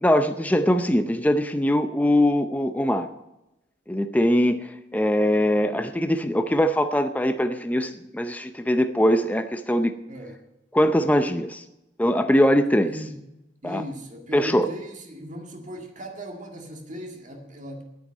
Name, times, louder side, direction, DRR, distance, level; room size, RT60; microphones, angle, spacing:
voice 1, 0.0-3.1 3.9-9.9 10.7-11.6 12.0-13.0 13.6-13.8 14.3-14.7, equal, 10° left, 8 dB, 0.6 m, -22 dB
voice 2, 10.1-10.4 12.9-13.2 13.6-17.8, equal, 45° right, 2 dB, 1.9 m, -38 dB
9.3 x 9.2 x 8.9 m, 0.92 s
head